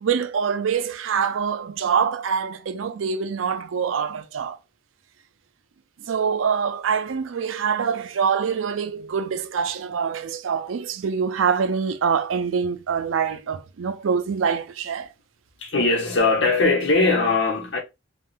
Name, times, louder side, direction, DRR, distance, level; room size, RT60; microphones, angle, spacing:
voice 1, 0.0-4.6 6.1-15.1, right 6 dB, 85° right, 0.4 m, -25 dB
voice 2, 15.6-17.8, left 3 dB, 70° left, 1.1 m, -20 dB
3.5 x 2.4 x 2.5 m
head